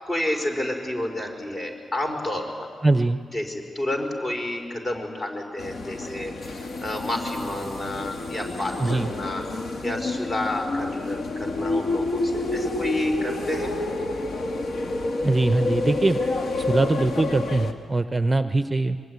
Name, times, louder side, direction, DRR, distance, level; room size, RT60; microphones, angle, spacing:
voice 1, 0.1-2.7 3.3-6.3 6.8-9.4 9.8-13.8, left 1 dB, 35° left, 3 dB, 4.9 m, -29 dB
voice 2, 2.8-3.2 8.8-9.1 15.2-16.2 16.6-19.0, right 2 dB, 20° right, 10 dB, 0.7 m, -22 dB
sound 1, 5.6-17.7, left 2 dB, 65° left, 2.0 m, -29 dB
24.5 x 22.5 x 9.4 m, 2.1 s
cardioid pair, 95°, 0 cm